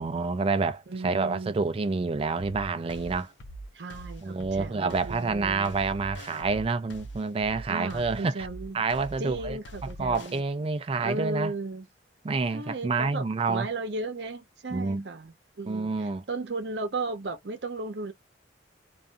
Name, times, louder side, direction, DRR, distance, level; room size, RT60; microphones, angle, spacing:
voice 1, 0.0-3.3 4.2-8.3 8.7-11.5 12.2-13.7 14.7-15.0 15.7-16.2, right 4 dB, 30° right, 0.3 m, -28 dB
voice 2, 0.9-1.5 3.7-5.8 7.7-8.8 9.2-10.4 11.0-11.9 12.5-18.1, right 3 dB, 65° right, 0.7 m, -35 dB
sound 1, 2.9-10.4, right 1 dB, 75° left, 0.6 m, -42 dB
2.6 x 2.4 x 2.3 m
head